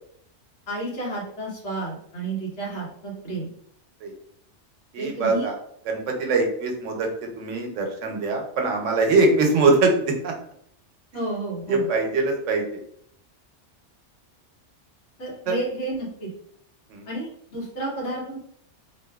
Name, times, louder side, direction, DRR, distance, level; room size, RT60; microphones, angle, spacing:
voice 1, 0.7-3.5 5.0-5.5 11.1-11.9 15.2-16.3 17.1-18.4, right 2 dB, 70° left, -4 dB, 1.3 m, -31 dB
voice 2, 4.9-5.5 5.9-7.1 7.4-10.3 11.7-12.8 15.5-15.6 16.9-17.1, right 3 dB, 85° right, 2 dB, 1.0 m, -22 dB
2.6 x 2.5 x 2.2 m, 0.68 s
omnidirectional pair, 1.2 m